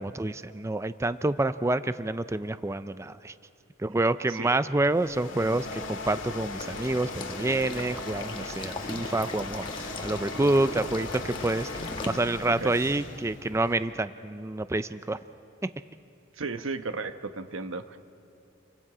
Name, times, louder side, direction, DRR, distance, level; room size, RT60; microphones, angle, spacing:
voice 1, 0.0-3.3 3.8-15.2 15.6-15.7, right 2 dB, 15° right, 13 dB, 0.4 m, -28 dB
sound 1, 4.8-13.9, left 3 dB, 75° left, 2.0 m, -38 dB
Water / Liquid, 6.6-12.1, left 2 dB, 25° left, 1.3 m, -40 dB
voice 2, 16.4-18.0, right 3 dB, 90° right, 9 dB, 1.1 m, -34 dB
29.5 x 24.5 x 4.9 m, 3.0 s
head